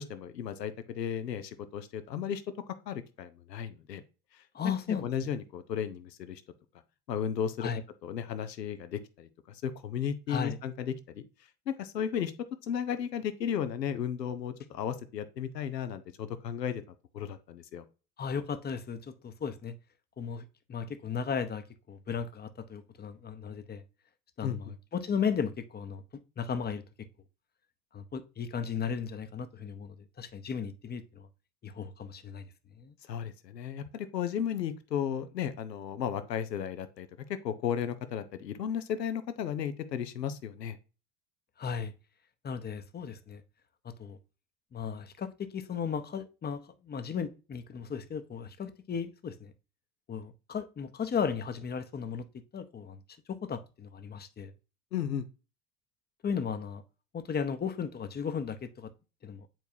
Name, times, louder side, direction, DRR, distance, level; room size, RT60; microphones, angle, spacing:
voice 1, 0.0-4.0 4.3-6.4 7.1-7.7 8.0-11.2 11.7-12.3 12.6-16.8 17.1-17.8 24.4-24.7 33.1-40.8 54.9-55.3, left 8 dB, 80° left, 0.9 m, -34 dB
voice 2, 4.5-5.1 7.6-7.8 10.3-10.6 18.2-19.8 20.2-23.8 24.4-27.1 27.9-31.3 31.6-32.5 32.7-32.9 41.6-41.9 42.4-43.4 43.8-44.2 44.7-49.5 50.1-52.2 52.5-53.0 53.3-54.5 56.2-56.8 57.1-58.9 59.2-59.5, left 6 dB, 20° left, 0.9 m, -35 dB
9.1 x 4.6 x 2.7 m
figure-of-eight pair, 70°, 49 cm